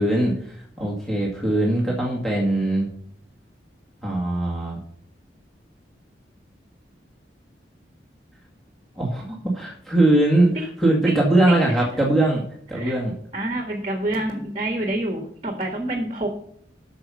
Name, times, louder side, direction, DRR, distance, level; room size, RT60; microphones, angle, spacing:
voice 1, 0.0-2.9 4.0-4.8 9.0-12.4 12.7-13.1, right 1 dB, ahead, -4 dB, 2.1 m, -21 dB
voice 2, 13.3-16.3, right 1 dB, 30° right, 3 dB, 1.6 m, -27 dB
9.5 x 6.5 x 5.6 m, 0.65 s
head